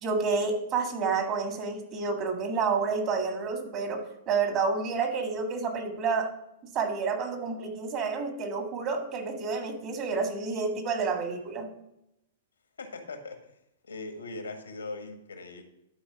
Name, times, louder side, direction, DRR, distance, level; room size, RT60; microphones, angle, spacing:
voice 1, 0.0-6.3 6.7-11.7, right 4 dB, 40° right, 5 dB, 1.8 m, -29 dB
voice 2, 12.8-13.4 13.8-15.6, left 3 dB, 90° left, 5 dB, 1.6 m, -40 dB
12.0 x 4.4 x 5.9 m, 0.83 s
hypercardioid pair, 110°, 0 cm